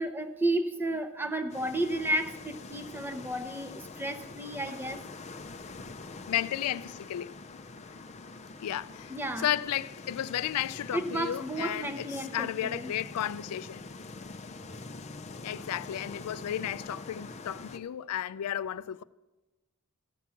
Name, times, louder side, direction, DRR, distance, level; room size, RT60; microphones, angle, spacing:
voice 1, 0.0-5.0 9.1-9.5 10.9-12.9, right 1 dB, 10° right, 0.7 m, -32 dB
sound 1, 1.5-17.8, left 3 dB, 30° left, 0.5 m, -45 dB
voice 2, 6.3-7.4 8.6-13.8 15.4-19.0, left 11 dB, 85° left, 0.3 m, -33 dB
14.0 x 6.0 x 7.0 m
head